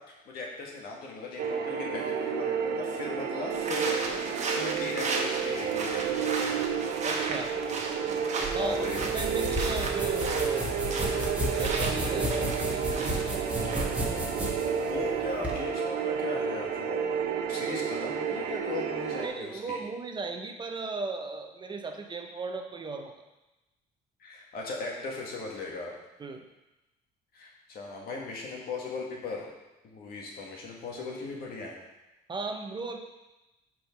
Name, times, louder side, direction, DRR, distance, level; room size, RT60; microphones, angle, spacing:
voice 1, 0.0-6.6 8.6-9.0 14.8-17.0 17.5-19.8 24.2-25.9 27.3-29.5 29.9-31.8, left 3 dB, 65° left, -2 dB, 1.8 m, -38 dB
sound 1, 1.4-19.3, right 7 dB, 75° right, 0.8 m, -31 dB
sound 2, 3.5-14.1, right 3 dB, 40° right, 1.1 m, -36 dB
voice 2, 7.0-7.6 8.5-10.8 11.5-13.5 19.2-23.2 26.2-26.4 32.3-33.0, right 4 dB, 25° right, 4 dB, 0.7 m, -36 dB
sound 3, 8.4-15.6, equal, 10° right, 1.4 m, -34 dB
5.1 x 4.7 x 6.1 m, 1.0 s
cardioid pair, 110°, 17 cm